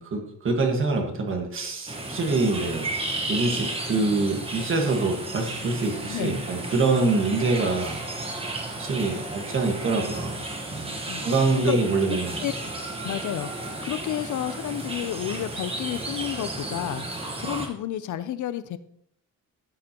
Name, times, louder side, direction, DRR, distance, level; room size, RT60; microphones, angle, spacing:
voice 1, 0.0-2.9 3.3-8.0 8.8-10.4 10.7-10.9 11.2-12.4, right 3 dB, 35° right, 2 dB, 1.6 m, -25 dB
sound 1, 1.9-17.7, right 2 dB, 15° right, 1.2 m, -33 dB
voice 2, 6.1-6.4 11.1-11.3 11.5-11.8 12.1-12.5 13.0-18.8, left 11 dB, 60° left, 13 dB, 0.5 m, -31 dB
13.0 x 7.5 x 2.9 m, 0.70 s
cardioid pair, 170°, 34 cm